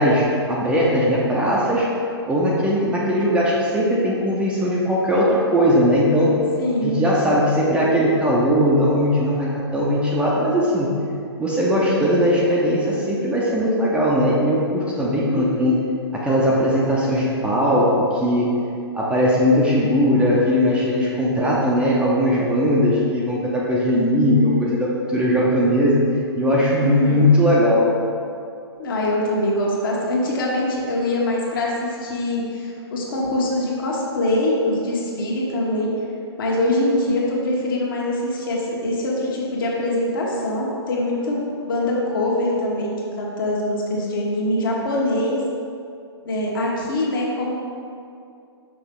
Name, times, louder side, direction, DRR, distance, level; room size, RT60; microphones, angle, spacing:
voice 1, 0.0-1.9 2.3-6.3 6.8-10.9 11.4-15.7 16.1-18.5 18.9-26.0 26.3-27.9, equal, 5° right, -6 dB, 0.7 m, -19 dB
voice 2, 6.6-7.0 15.3-15.7 26.8-27.3 28.8-35.9 36.4-41.4 41.7-45.4 46.2-47.5, left 1 dB, 50° left, -3 dB, 1.5 m, -23 dB
5.9 x 5.8 x 3.7 m, 2.5 s
figure-of-eight pair, 125°, 14 cm